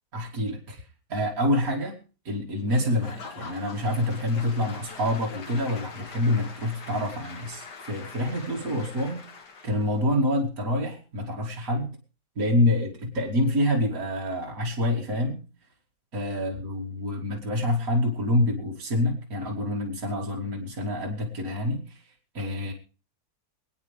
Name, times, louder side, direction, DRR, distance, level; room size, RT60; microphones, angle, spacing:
voice 1, 0.1-0.8 1.1-2.0 2.2-9.3 9.6-11.9 12.4-15.4 16.1-22.0 22.3-22.7, left 1 dB, 60° right, -1 dB, 2.8 m, -27 dB
Applause / Crowd, 2.7-10.0, left 5 dB, 85° left, 2.2 m, -43 dB
25.5 x 9.2 x 3.5 m, 0.35 s
omnidirectional pair, 1.7 m